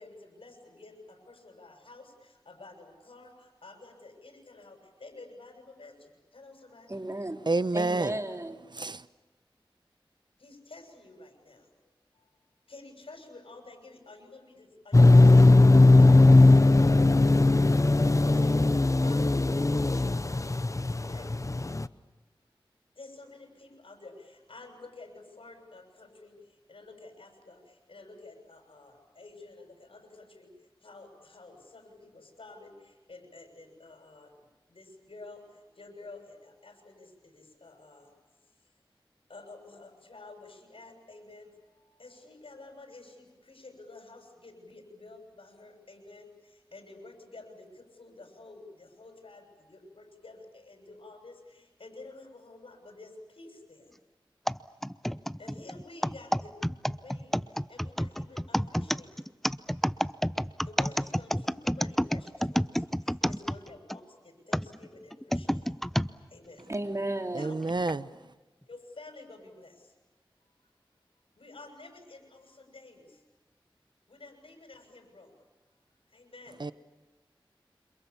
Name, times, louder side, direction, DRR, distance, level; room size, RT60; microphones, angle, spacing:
voice 1, 0.0-7.0 10.4-11.7 12.2-12.3 12.7-15.5 15.8-16.8 18.1-20.3 20.9-21.3 23.0-26.4 26.7-30.5 30.8-34.3 34.7-38.1 39.3-53.9 55.4-59.2 60.7-65.7 66.3-66.7 67.4-67.6 68.7-69.9 71.4-73.2 74.1-75.3 76.1-76.6, left 2 dB, 80° left, 7.2 m, -50 dB
voice 2, 6.9-7.4 7.7-8.6 66.7-67.5, right 1 dB, 30° right, 3.2 m, -33 dB
voice 3, 7.5-8.2 8.7-9.1 67.3-68.1 76.6-76.7, right 3 dB, 55° right, 0.9 m, -29 dB
sound 1, 14.9-21.9, left 2 dB, 35° left, 0.9 m, -19 dB
sound 2, 54.5-64.0 64.5-66.1 66.7-66.8 67.7-67.9, equal, 5° left, 0.8 m, -29 dB
29.0 x 27.0 x 7.2 m
cardioid pair, 40°, 9 cm